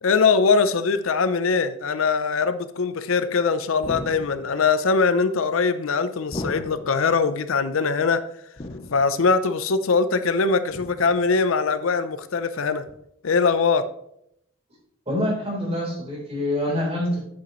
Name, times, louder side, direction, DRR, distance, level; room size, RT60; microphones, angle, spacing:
voice 1, 0.0-8.2 8.9-12.8 13.2-13.8, left 4 dB, 75° left, 12 dB, 0.6 m, -22 dB
sound 1, 3.8-4.6 6.3-7.1 8.6-9.3 10.7-11.3 12.9-13.0, left 1 dB, 30° left, 0.6 m, -36 dB
voice 2, 15.1-17.2, left 1 dB, 30° right, -3 dB, 3.7 m, -25 dB
9.2 x 8.5 x 3.1 m, 0.74 s
head